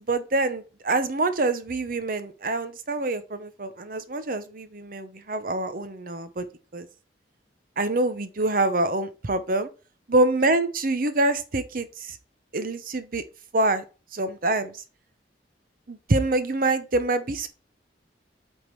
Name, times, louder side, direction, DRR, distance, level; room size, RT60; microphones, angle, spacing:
voice 1, 0.0-6.5 6.7-6.9 7.8-9.7 10.1-12.2 12.5-13.2 13.5-13.8 14.1-14.8 15.9-17.5, right 2 dB, 50° right, 0.8 m, -25 dB
8.2 x 3.7 x 4.6 m
head